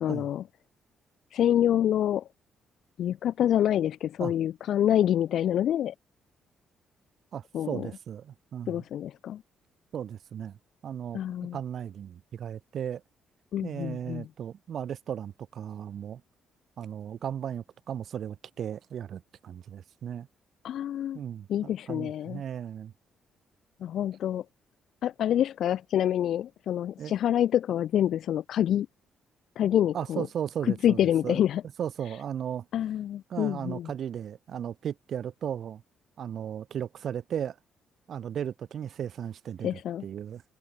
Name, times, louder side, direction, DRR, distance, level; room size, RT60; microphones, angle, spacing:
voice 1, 0.0-0.4 1.3-2.3 3.0-5.9 7.5-7.9 8.7-9.4 11.1-11.6 13.5-14.3 20.6-21.2 21.5-22.4 23.8-24.4 25.0-28.9 29.6-30.3 30.6-31.6 32.7-33.9 39.6-40.0, left 11 dB, 70° left, 0.9 m, -27 dB
voice 2, 7.3-8.8 9.9-10.6 10.8-11.2 11.5-13.0 13.6-16.2 16.8-20.3 21.1-21.5 21.9-22.9 27.0-27.1 29.9-31.4 31.8-32.6 33.3-35.8 36.2-37.6 38.1-40.4, right 9 dB, 60° right, 1.6 m, -36 dB
cardioid pair, 90°, 0 cm